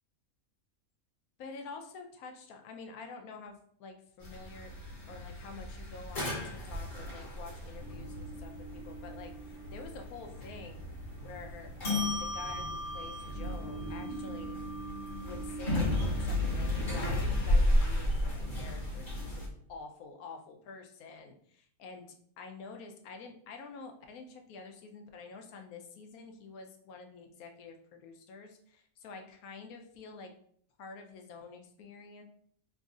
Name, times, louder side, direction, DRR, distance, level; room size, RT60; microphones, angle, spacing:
voice 1, 1.4-4.7 5.1-10.8 11.2-14.6 15.2-15.9 16.2-22.1 22.4-30.3 30.8-32.2, left 4 dB, 85° left, 4 dB, 1.1 m, -48 dB
sound 1, 4.2-19.5, left 1 dB, 40° left, 1.0 m, -33 dB
3.0 x 2.5 x 3.6 m, 0.63 s
omnidirectional pair, 1.5 m